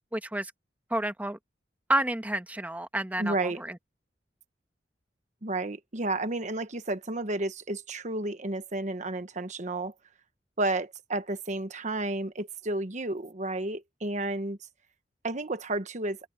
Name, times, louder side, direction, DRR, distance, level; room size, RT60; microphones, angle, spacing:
voice 1, 0.1-0.5 0.9-1.4 1.9-3.8, right 1 dB, 10° right, 1.3 m, -30 dB
voice 2, 3.2-3.6 5.4-9.9 10.6-14.6 15.2-16.2, right 2 dB, 45° right, 1.2 m, -31 dB
open air
head